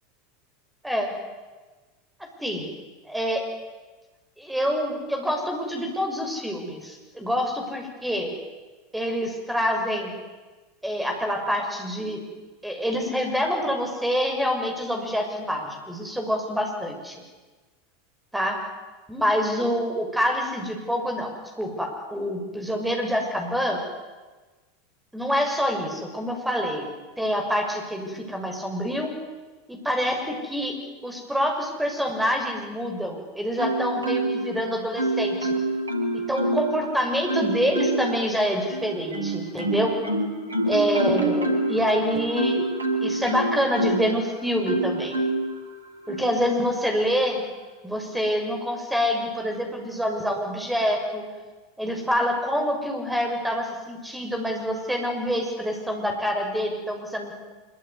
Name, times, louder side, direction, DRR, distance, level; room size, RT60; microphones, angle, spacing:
voice 1, 3.0-3.5 4.4-8.3 8.9-10.1 10.8-12.2 12.6-17.2 18.3-18.6 19.1-21.3 21.6-23.8 25.1-26.9 27.2-29.1 29.7-30.8 31.0-35.6 36.3-39.9 40.6-42.7 43.0-45.1 46.1-47.4 47.8-51.2 51.8-57.3, equal, 5° right, 2 dB, 6.4 m, -26 dB
Marimba xylophone, 33.6-34.6 35.0-36.8 37.3-38.2 38.7-44.1 44.7-45.5 46.1-46.3, right 1 dB, 75° right, 3.7 m, -26 dB
25.5 x 23.5 x 9.8 m, 1.3 s
figure-of-eight pair, 80°, 0 cm